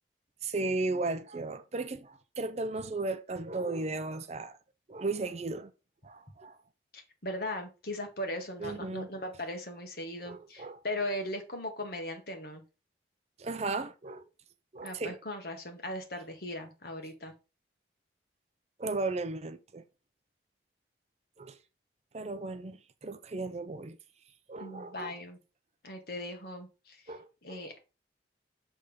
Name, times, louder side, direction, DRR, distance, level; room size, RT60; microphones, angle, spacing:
voice 1, 0.4-4.6 4.9-5.7 6.0-6.6 8.6-9.1 10.2-10.8 13.4-14.2 14.7-15.2 18.8-19.8 21.4-21.6 22.1-24.0 24.5-25.2 27.1-27.6, right 3 dB, 35° right, 0.5 m, -35 dB
voice 2, 6.9-12.6 14.8-17.3 24.6-25.4 25.8-27.0 27.4-27.8, left 1 dB, 55° left, 1.6 m, -38 dB
6.8 x 3.5 x 5.1 m
head